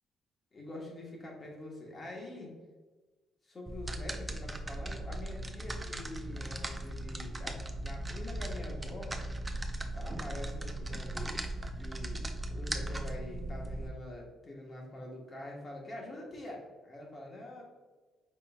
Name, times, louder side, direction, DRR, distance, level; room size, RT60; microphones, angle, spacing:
voice 1, 0.5-2.5 3.4-9.2 9.9-17.6, left 1 dB, 35° left, -1 dB, 1.4 m, -45 dB
sound 1, 3.7-13.9, right 1 dB, 15° right, 0.5 m, -38 dB
5.4 x 3.9 x 2.4 m, 1.3 s
cardioid pair, 90°, 0 cm